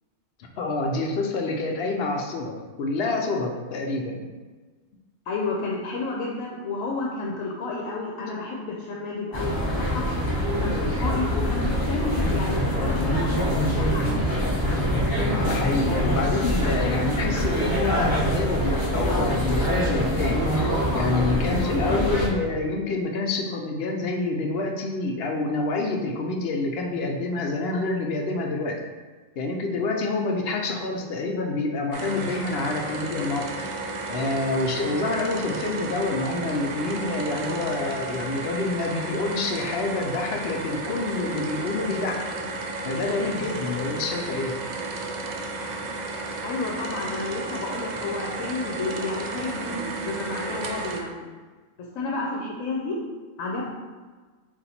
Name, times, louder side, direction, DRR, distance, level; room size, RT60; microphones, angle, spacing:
voice 1, 0.6-4.2 15.4-28.8 29.4-33.6 34.1-42.2 42.8-44.6, left 3 dB, 65° left, 2 dB, 0.7 m, -27 dB
voice 2, 5.3-10.0 10.6-14.2 46.4-51.1 51.8-53.0 53.4-53.7, left 3 dB, 85° left, -2 dB, 1.0 m, -31 dB
sound 1, 9.3-22.3, equal, 25° left, 0.6 m, -24 dB
sound 2, 31.9-51.0, right 3 dB, 70° right, 0.4 m, -33 dB
4.1 x 2.5 x 4.1 m, 1.4 s
omnidirectional pair, 1.3 m